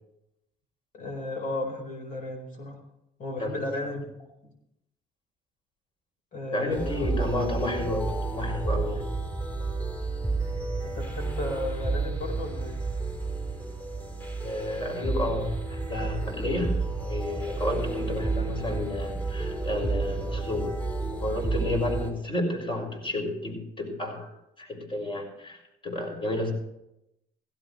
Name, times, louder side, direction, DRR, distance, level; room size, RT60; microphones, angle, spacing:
voice 1, 0.9-2.8 3.2-4.1 4.4-4.5 6.3-7.1 10.8-12.8, left 2 dB, 55° left, 3 dB, 4.6 m, -34 dB
voice 2, 6.5-9.0 14.4-20.7 21.2-24.3 24.6-26.5, left 1 dB, 30° left, 1 dB, 6.2 m, -31 dB
sound 1, 6.7-22.1, right 3 dB, 10° left, 3.9 m, -31 dB
16.5 x 16.5 x 3.2 m, 0.84 s
cardioid pair, 110°, 17 cm